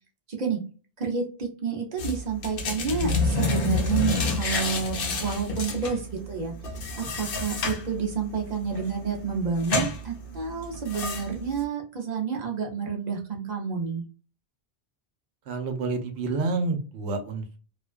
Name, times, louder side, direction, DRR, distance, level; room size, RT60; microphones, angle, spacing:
voice 1, 0.3-0.6 1.0-6.5 7.0-14.0, right 6 dB, 45° right, 0 dB, 0.6 m, -29 dB
sound 1, 2.0-11.6, left 3 dB, 60° left, 0.8 m, -29 dB
voice 2, 15.5-17.6, right 3 dB, 75° right, 6 dB, 0.9 m, -29 dB
2.4 x 2.2 x 2.3 m, 0.36 s
omnidirectional pair, 1.1 m